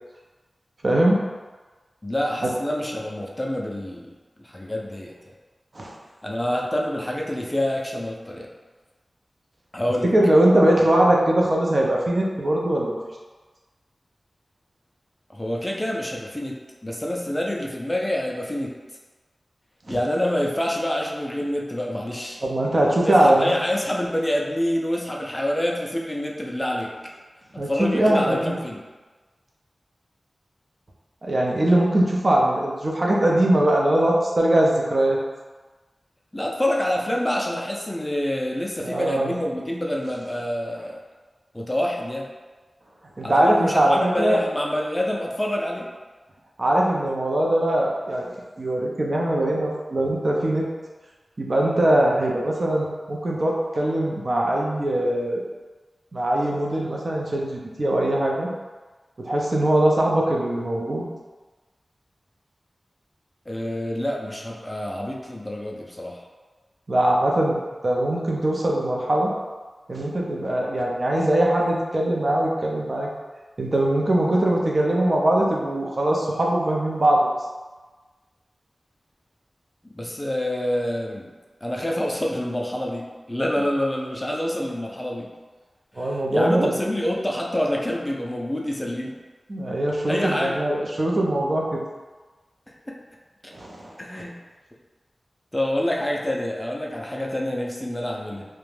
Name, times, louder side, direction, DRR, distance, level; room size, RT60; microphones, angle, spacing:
voice 1, 0.8-1.2 5.7-6.0 10.1-13.0 19.9-20.0 22.4-23.5 27.6-28.5 31.2-35.2 38.8-39.4 43.2-44.4 46.6-50.7 51.4-55.4 56.1-58.5 59.2-61.1 66.9-69.3 69.9-73.1 73.6-77.3 86.0-86.7 89.5-91.8 93.5-93.9, right 1 dB, 50° right, -2 dB, 0.5 m, -21 dB
voice 2, 2.0-4.1 4.4-5.1 6.2-8.5 9.7-10.1 15.3-18.8 19.9-22.4 23.0-26.9 27.5-28.8 36.3-41.0 41.5-42.3 43.2-45.9 63.5-66.2 79.8-81.3 81.6-85.3 86.0-89.1 90.1-90.6 92.9-93.0 94.0-94.3 95.5-98.5, left 1 dB, 15° left, -1 dB, 0.4 m, -27 dB
2.4 x 2.1 x 3.2 m, 1.3 s
wide cardioid pair, 60°, 0 cm